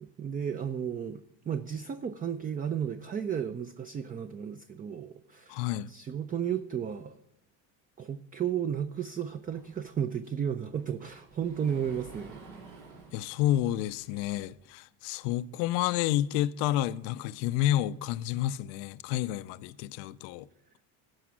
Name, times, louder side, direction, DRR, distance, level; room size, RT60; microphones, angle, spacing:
voice 1, 0.0-7.2 8.0-12.4, right 8 dB, 20° right, 0.4 m, -33 dB
voice 2, 5.5-5.9 13.1-20.5, left 13 dB, 80° left, 0.5 m, -30 dB
Sliding door, 9.5-14.5, right 4 dB, 85° right, 3.1 m, -52 dB
12.5 x 5.0 x 7.4 m
supercardioid pair, 100°, 41 cm